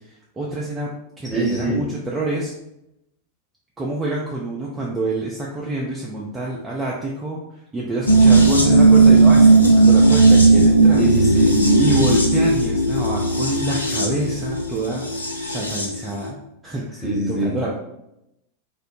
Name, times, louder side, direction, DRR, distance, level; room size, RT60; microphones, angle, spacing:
voice 1, 0.4-2.5 3.8-7.4 7.7-11.0 11.8-16.4 16.6-17.8, right 2 dB, 15° right, -4 dB, 0.4 m, -27 dB
voice 2, 1.3-1.9 11.0-11.8 17.0-17.6, right 1 dB, 5° left, -5 dB, 0.9 m, -23 dB
sound 1, 8.1-16.0 16.2-16.3, right 3 dB, 80° left, 0.4 m, -15 dB
2.5 x 2.0 x 3.0 m, 0.84 s
figure-of-eight pair, 90°, 0 cm